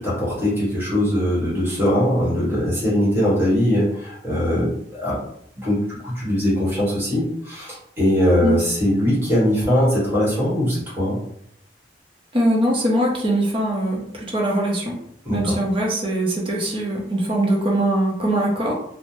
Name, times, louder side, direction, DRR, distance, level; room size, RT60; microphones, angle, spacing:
voice 1, 0.0-4.7 5.0-5.2 5.6-11.2 15.2-15.6, equal, 15° right, -7 dB, 1.2 m, -21 dB
voice 2, 12.3-15.0 15.3-18.7, right 1 dB, 30° right, -2 dB, 0.7 m, -21 dB
3.1 x 2.1 x 2.7 m, 0.71 s
head